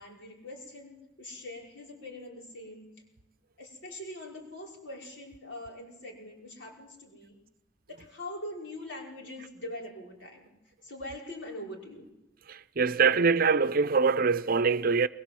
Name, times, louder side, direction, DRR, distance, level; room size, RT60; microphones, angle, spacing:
voice 1, 0.0-2.9 3.6-7.4 7.9-10.5 10.8-12.1, left 1 dB, 75° left, 5.4 m, -43 dB
voice 2, 12.5-15.1, right 5 dB, 50° right, 0.7 m, -24 dB
22.0 x 21.0 x 7.8 m
head